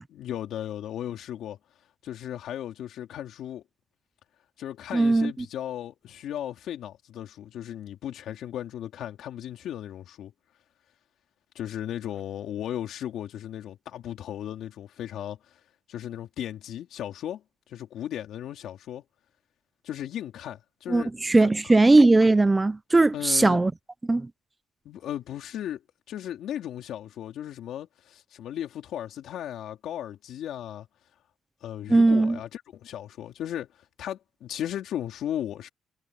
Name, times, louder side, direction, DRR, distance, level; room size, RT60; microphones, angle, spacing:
voice 1, 0.0-1.6 2.0-3.6 4.6-10.3 11.6-15.6 15.9-19.0 19.8-21.1 21.4-21.8 23.1-23.6 24.9-25.8 26.1-30.9 31.6-35.7, left 11 dB, 70° left, 3.4 m, -36 dB
voice 2, 4.9-5.3 20.9-23.7 24.1-24.3 31.9-32.4, right 2 dB, 15° right, 0.7 m, -19 dB
cardioid pair, 155°, 0 cm